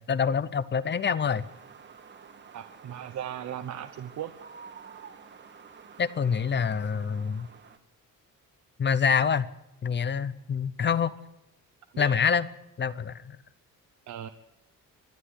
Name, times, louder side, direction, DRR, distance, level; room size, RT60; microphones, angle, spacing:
voice 1, 0.0-1.5 6.0-7.5 8.8-9.5 9.8-11.1 12.0-12.5 12.8-13.4, left 6 dB, 35° left, 16 dB, 0.8 m, -26 dB
sound 1, 1.4-7.8, right 6 dB, 35° right, 1.5 m, -50 dB
voice 2, 2.5-4.3 11.9-12.1 14.1-14.3, right 10 dB, 60° right, 9 dB, 0.9 m, -37 dB
25.5 x 11.0 x 9.9 m, 0.89 s
wide cardioid pair, 165°, 32 cm